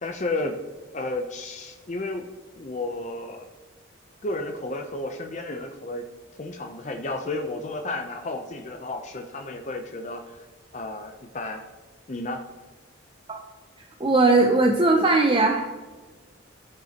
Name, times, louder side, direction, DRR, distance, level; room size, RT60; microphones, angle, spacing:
voice 1, 0.0-0.5 0.9-2.3 2.6-3.5 4.2-6.0 6.4-10.4 10.7-11.6 12.1-12.4, left 2 dB, 35° left, 3 dB, 0.6 m, -32 dB
voice 2, 14.0-15.6, right 3 dB, 25° right, 3 dB, 0.5 m, -19 dB
13.5 x 5.3 x 2.9 m, 1.3 s
head